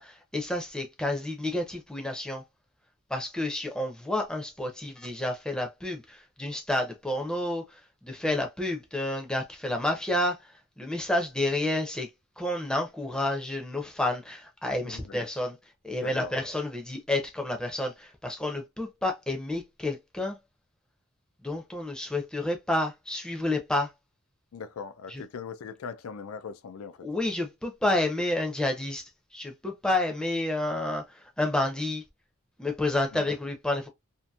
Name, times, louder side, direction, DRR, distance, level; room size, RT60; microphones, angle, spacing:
voice 1, 0.0-2.4 3.1-12.1 12.4-15.6 15.8-20.4 21.4-23.9 25.1-25.2 27.0-32.0 32.6-33.9, left 1 dB, 5° left, 0.5 m, -30 dB
voice 2, 16.0-16.3 24.5-27.1 33.1-33.3, left 6 dB, 90° left, 0.4 m, -40 dB
2.7 x 2.5 x 2.3 m
head